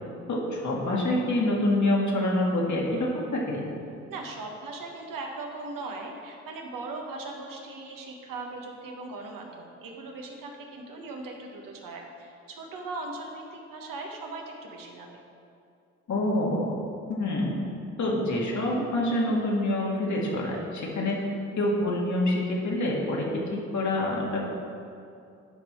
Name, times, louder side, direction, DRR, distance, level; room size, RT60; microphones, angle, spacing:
voice 1, 0.3-3.6 16.1-16.8 17.1-17.7 18.0-21.2 21.6-24.5, left 1 dB, 55° left, -3 dB, 2.3 m, -26 dB
voice 2, 4.1-15.2, right 3 dB, 65° right, 1 dB, 1.4 m, -39 dB
11.0 x 5.4 x 4.6 m, 2.5 s
hypercardioid pair, 50°, 36 cm